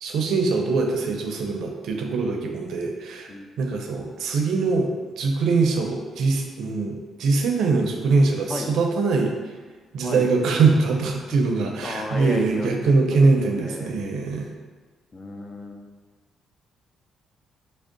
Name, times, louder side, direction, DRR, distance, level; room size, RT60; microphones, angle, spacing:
voice 1, 0.0-3.3 3.6-4.9 5.2-9.3 9.9-14.5, right 4 dB, 75° right, 2 dB, 0.5 m, -22 dB
voice 2, 11.8-14.0 15.1-15.9, left 2 dB, 35° left, 3 dB, 0.4 m, -34 dB
3.5 x 2.0 x 3.8 m, 1.4 s
cardioid pair, 90°, 0 cm